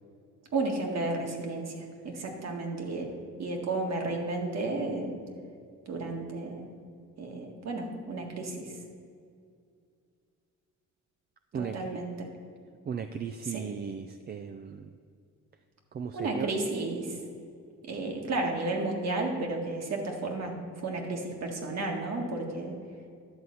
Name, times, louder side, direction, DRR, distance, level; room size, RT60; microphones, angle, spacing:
voice 1, 0.5-3.1 3.4-5.1 5.9-6.7 7.2-8.7 11.5-12.3 13.4-13.7 16.1-17.2 17.9-22.7, right 2 dB, 60° right, 1 dB, 1.9 m, -33 dB
voice 2, 11.5-12.0 12.9-14.8 15.9-16.5, right 6 dB, 35° right, 7 dB, 0.4 m, -36 dB
11.0 x 4.1 x 7.7 m, 2.4 s
cardioid pair, 90°, 30 cm